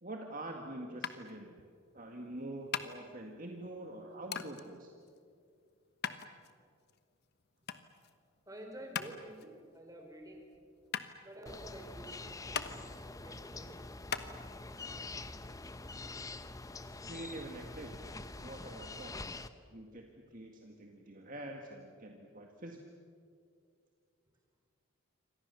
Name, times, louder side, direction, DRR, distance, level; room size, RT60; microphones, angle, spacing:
voice 1, 0.0-1.5 1.9-4.9 17.1-17.9 18.4-19.4 19.7-20.0 20.3-22.8, right 1 dB, 40° right, 2 dB, 1.9 m, -45 dB
sound 1, 1.0-14.3, left 7 dB, 50° left, 1.2 m, -43 dB
voice 2, 8.5-10.5 11.2-13.8, right 1 dB, 15° right, 2 dB, 4.4 m, -50 dB
sound 2, 11.5-19.5, left 2 dB, 15° left, 0.8 m, -45 dB
28.5 x 25.0 x 7.0 m, 2.3 s
head